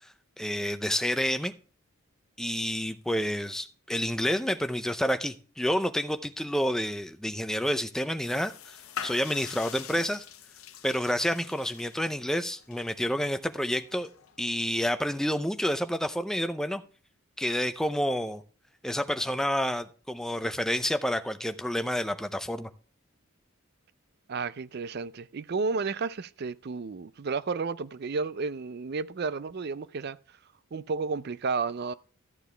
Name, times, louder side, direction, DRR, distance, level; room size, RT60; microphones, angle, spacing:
voice 1, 0.4-1.5 2.4-8.8 9.0-10.2 10.8-14.1 14.4-16.8 17.4-18.4 18.8-22.7, equal, ahead, 0.5 m, -29 dB
sound 1, 8.2-14.9, left 8 dB, 75° left, 0.9 m, -44 dB
voice 2, 24.3-30.2 30.7-31.9, right 4 dB, 50° right, 0.4 m, -32 dB
13.5 x 7.1 x 3.3 m
head